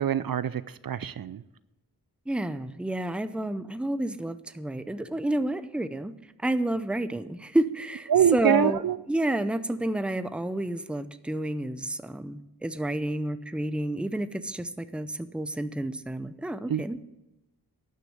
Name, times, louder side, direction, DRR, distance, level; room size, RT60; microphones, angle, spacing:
voice 1, 0.0-1.4 8.1-9.0 16.7-16.8, right 9 dB, 60° right, 16 dB, 0.5 m, -24 dB
voice 2, 2.3-6.1 6.4-8.8 9.1-17.0, right 1 dB, 5° right, 12 dB, 0.6 m, -30 dB
12.0 x 6.5 x 7.8 m, 0.96 s
wide cardioid pair, 65°, 40 cm